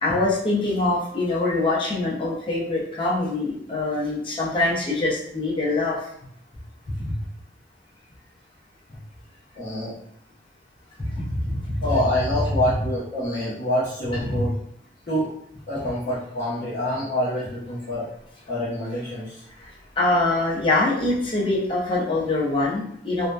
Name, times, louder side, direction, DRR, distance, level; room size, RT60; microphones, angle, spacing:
voice 1, 0.0-6.1 7.0-7.1 11.0-11.8 14.2-14.4 19.6-19.7 20.0-23.3, left 2 dB, 30° left, -4 dB, 0.6 m, -24 dB
voice 2, 9.5-9.9 11.8-14.5 15.1-15.3 15.7-18.1 18.5-19.4, left 1 dB, 55° left, -11 dB, 0.9 m, -26 dB
2.6 x 2.1 x 2.2 m, 0.69 s
head